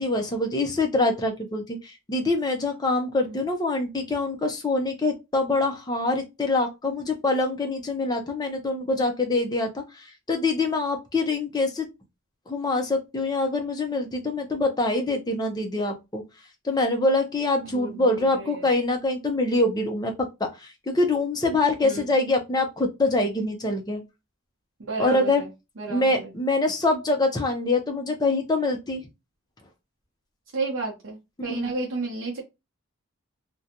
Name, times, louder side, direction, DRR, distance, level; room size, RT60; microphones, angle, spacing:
voice 1, 0.0-11.9 12.5-16.2 16.6-24.0 25.0-25.4 25.9-29.0 31.5-31.7, left 2 dB, 20° left, 4 dB, 0.5 m, -25 dB
voice 2, 17.7-18.6 21.8-22.1 24.9-25.5 25.8-26.3 30.5-31.2 31.4-32.4, right 3 dB, 70° right, -2 dB, 0.7 m, -32 dB
2.5 x 2.2 x 2.8 m, 0.23 s
head